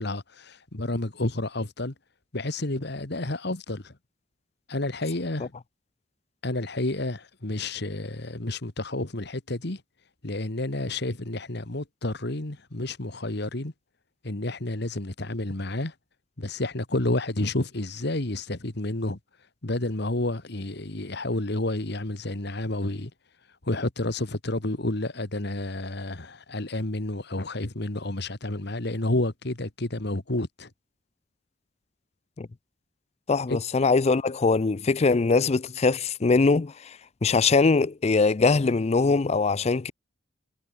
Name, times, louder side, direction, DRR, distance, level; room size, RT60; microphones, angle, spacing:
voice 1, 0.0-1.9 2.3-3.9 4.7-5.5 6.4-9.8 10.2-13.7 14.2-15.9 16.4-19.2 19.6-23.1 23.6-30.7 33.5-33.6, left 2 dB, 60° left, 1.9 m, -30 dB
voice 2, 33.3-37.0 37.2-39.9, left 4 dB, 35° left, 0.5 m, -22 dB
head